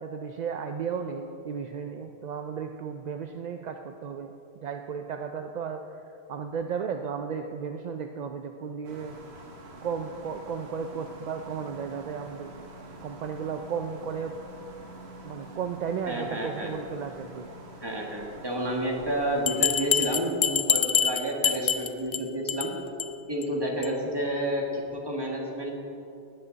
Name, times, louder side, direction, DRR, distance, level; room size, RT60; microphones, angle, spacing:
voice 1, 0.0-4.3 4.6-6.0 6.3-9.1 9.8-12.5 13.0-14.3 15.2-17.5, right 6 dB, 55° right, 5 dB, 0.5 m, -34 dB
sound 1, 8.8-20.0, right 1 dB, 75° right, 1.6 m, -46 dB
voice 2, 16.1-16.8 17.8-22.7 23.3-25.7, right 1 dB, 20° right, -1 dB, 1.7 m, -30 dB
Bell, 19.5-22.2 22.5-22.7 23.0-23.1 23.4-23.5 23.8-23.9, left 7 dB, 50° left, 0.3 m, -25 dB
19.5 x 7.7 x 4.0 m, 2.8 s
omnidirectional pair, 1.1 m